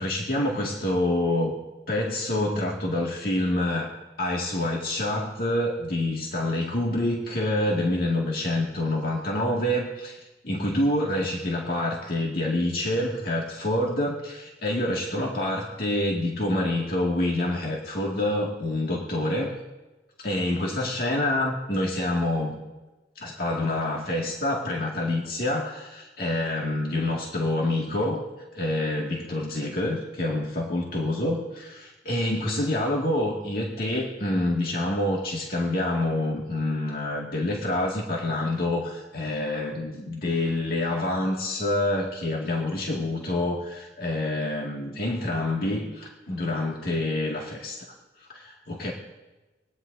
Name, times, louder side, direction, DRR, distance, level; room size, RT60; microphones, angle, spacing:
voice 1, 0.0-1.6 1.9-3.9 4.2-10.2 10.4-19.6 20.2-22.6 23.2-28.3 28.5-47.9 48.3-48.9, left 1 dB, 55° left, -2 dB, 2.2 m, -27 dB
24.5 x 21.0 x 2.7 m, 1.1 s
head